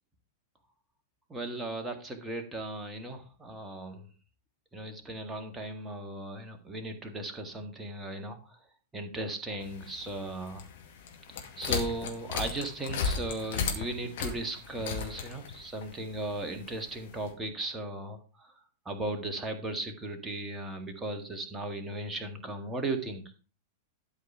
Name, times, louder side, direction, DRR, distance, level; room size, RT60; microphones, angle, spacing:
voice 1, 1.3-4.1 4.7-8.6 8.9-10.7 11.3-18.5 18.9-23.3, right 2 dB, 15° right, 4 dB, 1.8 m, -37 dB
sound 1, 9.6-17.3, left 6 dB, 55° left, 2.2 m, -36 dB
12.0 x 5.1 x 4.9 m, 0.35 s
figure-of-eight pair, 95°, 0 cm